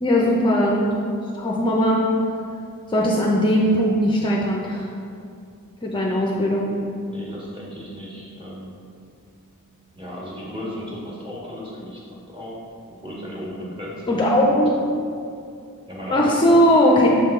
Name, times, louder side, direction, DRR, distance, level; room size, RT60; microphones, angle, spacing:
voice 1, 0.0-1.0 1.4-2.0 2.9-4.9 5.8-6.6 14.1-14.7 16.1-17.1, equal, 20° left, -2 dB, 0.5 m, -19 dB
voice 2, 7.1-8.8 9.9-12.0 12.3-12.6 13.0-14.5 15.9-16.6, equal, 25° right, -6 dB, 1.4 m, -35 dB
6.6 x 3.7 x 4.3 m, 2.4 s
head